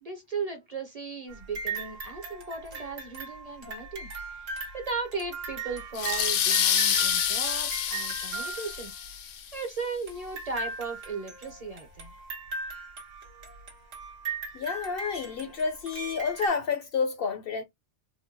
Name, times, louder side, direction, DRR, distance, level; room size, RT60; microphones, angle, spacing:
voice 1, 0.0-4.1 4.3-8.9 9.5-12.1, right 4 dB, 40° right, 0.7 m, -36 dB
sound 1, 1.3-9.2 10.1-16.5, right 4 dB, 80° right, 1.6 m, -39 dB
sound 2, 6.0-9.4, left 9 dB, 80° left, 1.0 m, -27 dB
voice 2, 14.5-17.6, left 5 dB, 60° left, 0.7 m, -30 dB
4.2 x 2.2 x 2.8 m
omnidirectional pair, 1.2 m